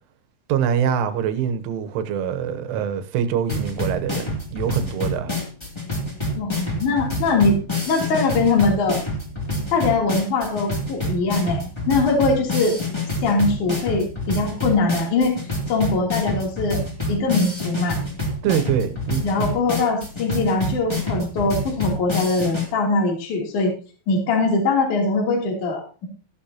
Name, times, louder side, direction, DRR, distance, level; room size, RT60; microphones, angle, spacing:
voice 1, 0.5-5.3 18.4-19.5, right 8 dB, 85° right, 3.7 m, -24 dB
sound 1, 3.5-22.7, left 1 dB, 15° left, 1.1 m, -27 dB
voice 2, 6.4-7.6 7.9-9.0 9.7-12.7 13.2-15.3 15.7-16.8 17.1-18.0 19.2-23.7 24.1-26.1, left 3 dB, 45° left, 4.1 m, -21 dB
15.0 x 11.5 x 2.9 m
omnidirectional pair, 5.5 m